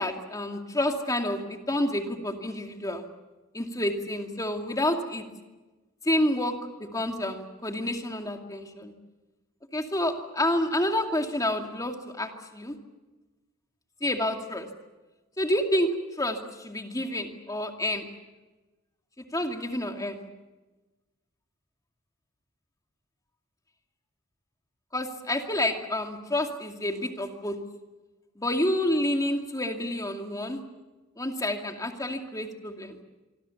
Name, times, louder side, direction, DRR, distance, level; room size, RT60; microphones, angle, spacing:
voice 1, 0.0-3.1 3.5-5.2 6.0-6.5 6.8-8.9 9.7-12.7 14.0-14.7 15.4-15.9 16.2-18.1 19.2-20.3 24.9-27.6 28.4-30.6 31.2-33.0, left 1 dB, 15° left, 4 dB, 2.4 m, -29 dB
25.5 x 24.5 x 7.2 m, 1.2 s
head